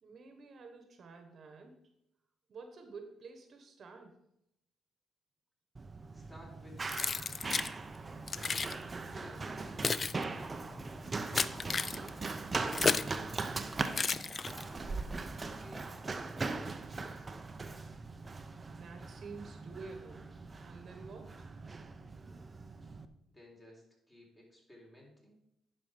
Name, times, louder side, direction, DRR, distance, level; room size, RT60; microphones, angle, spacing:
voice 1, 0.0-1.8 2.5-4.2 18.7-21.4, right 4 dB, 55° right, 6 dB, 1.2 m, -50 dB
Run, 5.8-23.1, right 3 dB, 30° right, 0.7 m, -40 dB
voice 2, 6.1-7.4 8.3-10.6 11.4-13.8 14.4-17.4 22.8-22.9 23.3-25.4, left 1 dB, 15° left, -1 dB, 3.8 m, -57 dB
Keys jangling, 6.9-7.7 8.3-8.8 9.5-13.2 13.9-14.8, left 5 dB, 35° left, 0.3 m, -33 dB
10.5 x 5.2 x 5.1 m, 0.80 s
cardioid pair, 90°, 0 cm